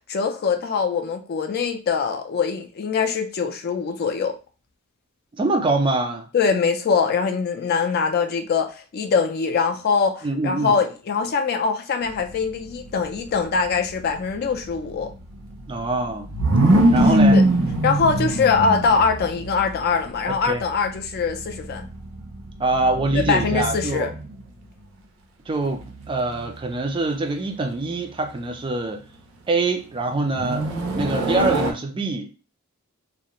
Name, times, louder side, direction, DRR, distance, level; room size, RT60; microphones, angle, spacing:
voice 1, 0.1-4.4 6.3-15.1 17.3-17.4 17.8-21.9 23.1-24.1, left 5 dB, 50° left, 0.4 m, -23 dB
voice 2, 5.4-6.3 10.2-10.8 15.7-16.3 16.9-17.4 20.3-20.6 22.6-24.1 25.5-29.1 29.5-30.7 31.0-32.3, right 2 dB, 25° right, 0.3 m, -24 dB
sound 1, 12.1-24.5 25.7-26.5 30.3-31.7, right 1 dB, 85° right, 0.5 m, -23 dB
2.4 x 2.0 x 2.9 m
head